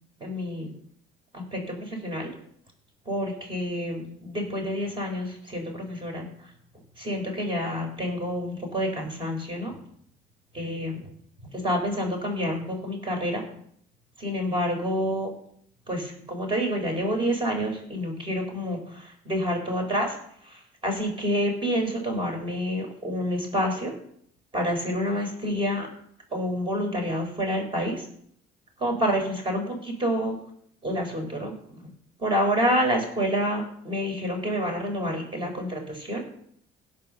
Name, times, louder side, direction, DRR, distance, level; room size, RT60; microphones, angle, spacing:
voice 1, 0.2-0.7 1.3-2.3 3.1-6.2 7.0-9.7 10.5-11.0 11.6-13.4 14.2-15.3 15.9-20.1 20.8-23.9 24.5-25.9 26.3-28.0 28.8-30.3 30.8-31.5 32.2-36.2, equal, 30° right, 3 dB, 4.8 m, -28 dB
16.5 x 5.6 x 6.7 m, 0.67 s
cardioid pair, 110°, 17 cm